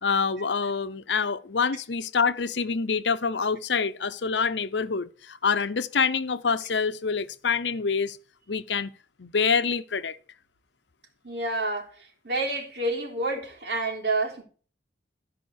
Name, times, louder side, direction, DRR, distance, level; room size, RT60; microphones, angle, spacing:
voice 1, 0.0-8.2 8.5-8.9 9.2-10.2, left 5 dB, 90° left, 0.8 m, -26 dB
voice 2, 11.2-11.9 12.2-14.4, right 2 dB, 70° right, 3.5 m, -28 dB
14.5 x 5.2 x 6.4 m
head